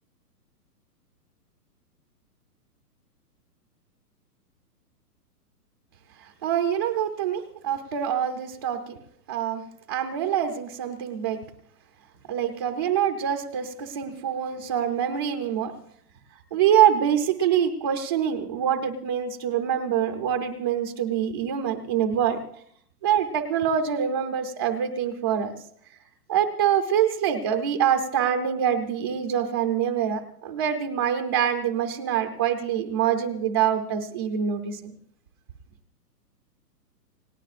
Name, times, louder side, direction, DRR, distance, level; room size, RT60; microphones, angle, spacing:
voice 1, 6.4-9.0 9.3-9.6 9.9-11.4 12.3-15.7 16.5-22.4 23.0-25.5 26.3-34.8, right 9 dB, 15° right, 3 dB, 0.5 m, -25 dB
29.0 x 18.0 x 2.4 m, 0.65 s
hypercardioid pair, 160°, 48 cm